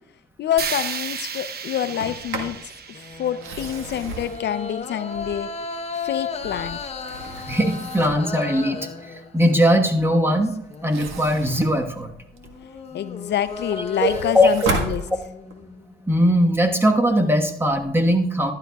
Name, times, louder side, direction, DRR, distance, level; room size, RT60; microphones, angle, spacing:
voice 1, 0.4-5.5 5.9-6.8 12.9-15.0, left 10 dB, 60° left, 12 dB, 0.5 m, -27 dB
sound 1, 0.6-4.6, right 6 dB, 50° right, 0.9 m, -34 dB
Sliding door, 1.8-2.6 3.3-5.6 6.2-8.3 10.7-12.7 13.1-15.6, right 3 dB, 85° right, 1.5 m, -33 dB
sound 2, 2.3-9.8 10.2-11.4 12.3-16.3, left 5 dB, 30° left, 0.9 m, -35 dB
voice 2, 7.5-8.8 9.1-10.5 10.8-12.1 14.0-14.5 16.1-18.5, equal, 10° right, 3 dB, 1.3 m, -20 dB
14.5 x 11.5 x 2.3 m, 0.82 s
cardioid pair, 90°, 20 cm